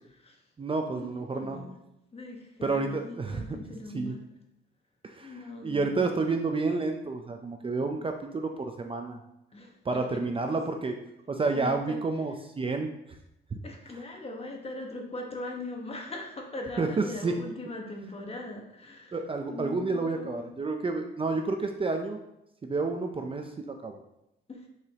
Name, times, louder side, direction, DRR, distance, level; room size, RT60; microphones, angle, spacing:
voice 1, 0.6-1.6 2.6-3.4 3.9-4.1 5.1-5.3 5.6-9.2 9.8-11.0 11.3-12.9 16.8-17.4 19.1-22.2 22.6-24.0, right 3 dB, 25° right, 4 dB, 0.6 m, -30 dB
voice 2, 1.3-1.7 2.1-4.2 5.2-6.2 9.5-10.2 11.5-12.0 13.6-19.2 19.5-20.5 24.5-24.7, left 2 dB, 30° left, 1 dB, 1.3 m, -40 dB
6.6 x 4.9 x 2.9 m, 0.84 s
cardioid pair, 90°, 20 cm